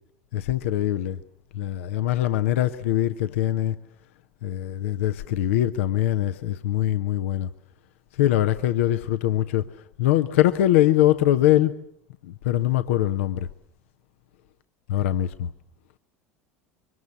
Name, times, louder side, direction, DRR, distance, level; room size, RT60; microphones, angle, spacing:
voice 1, 0.3-1.2 1.5-3.8 4.4-7.5 8.2-9.7 10.0-11.7 12.2-13.5 14.9-15.5, left 13 dB, 65° left, 1.0 m, -22 dB
25.5 x 24.0 x 7.3 m
figure-of-eight pair, 70°, 7 cm